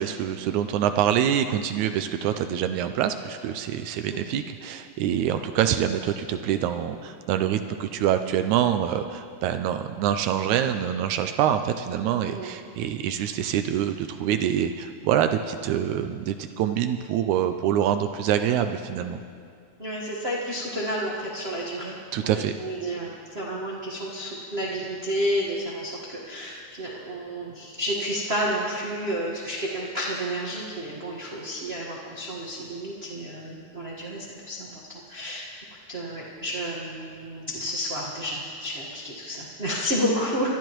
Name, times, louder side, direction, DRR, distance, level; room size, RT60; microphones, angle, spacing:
voice 1, 0.0-19.2 22.1-22.5, right 10 dB, 80° right, 8 dB, 1.9 m, -25 dB
voice 2, 19.8-21.9 22.3-34.7 35.1-35.5 35.9-40.6, equal, 35° right, -5 dB, 0.9 m, -30 dB
23.5 x 12.5 x 3.1 m, 2.3 s
omnidirectional pair, 3.5 m